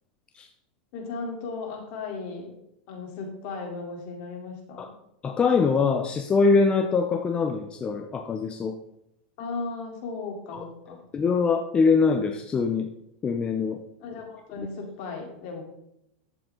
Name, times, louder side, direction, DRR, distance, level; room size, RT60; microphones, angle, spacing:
voice 1, 0.9-2.5 2.9-4.9 9.4-11.0 14.0-15.6, left 4 dB, 55° left, 1 dB, 3.5 m, -36 dB
voice 2, 5.2-8.8 10.5-10.6 11.1-12.9 13.2-13.8 14.6-14.7, left 4 dB, 20° left, 5 dB, 0.8 m, -23 dB
13.0 x 7.7 x 3.8 m, 0.79 s
supercardioid pair, 140°, 5 cm